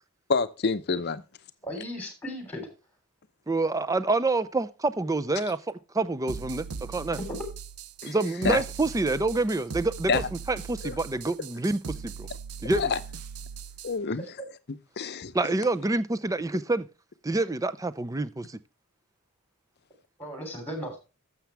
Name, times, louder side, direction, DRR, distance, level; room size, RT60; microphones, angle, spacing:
voice 1, 0.3-1.2 8.0-8.2 8.4-8.6 10.1-10.3 10.8-11.0 12.6-13.0 13.8-14.3 15.0-15.3, left 4 dB, 50° left, 0.7 m, -27 dB
voice 2, 1.6-2.7 7.2-7.4 20.2-21.0, equal, 5° left, 3.2 m, -36 dB
voice 3, 3.5-5.6 5.9-7.2 8.0-12.3 12.6-12.9 15.3-16.8 17.2-18.6, right 2 dB, 15° right, 0.5 m, -27 dB
sound 1, 6.3-14.0, right 5 dB, 80° right, 0.6 m, -39 dB
12.0 x 7.3 x 3.4 m
head